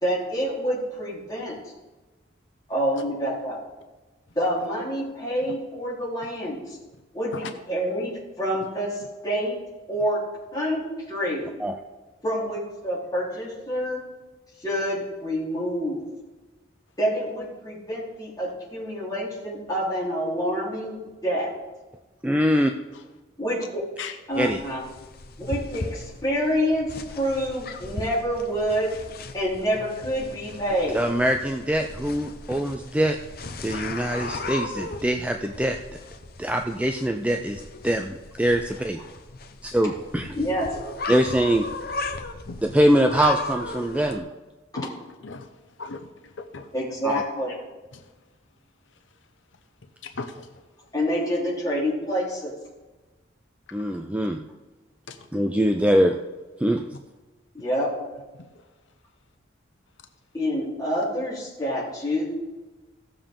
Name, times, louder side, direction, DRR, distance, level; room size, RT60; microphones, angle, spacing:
voice 1, 0.0-1.5 2.7-3.6 4.3-6.6 7.1-9.6 9.9-10.2 10.5-11.5 12.2-14.0 14.6-16.0 17.0-21.5 23.4-23.8 24.3-24.8 25.5-28.9 29.3-31.0 40.3-40.8 44.7-44.9 46.7-47.5 50.9-52.5 57.5-57.9 60.3-62.3, equal, 20° left, -7 dB, 3.7 m, -27 dB
voice 2, 22.2-22.7 24.4-24.6 30.9-33.2 33.6-35.8 36.4-39.0 39.6-40.3 41.1-41.7 42.6-44.2 47.0-47.1 53.7-54.4 55.3-56.2 56.6-56.8, equal, 5° right, 4 dB, 0.4 m, -23 dB
sound 1, 24.3-44.2, left 3 dB, 50° left, 0.8 m, -37 dB
voice 3, 50.0-50.5 55.1-55.2, left 4 dB, 85° left, 7 dB, 0.7 m, -35 dB
16.5 x 7.0 x 3.7 m, 1.2 s
head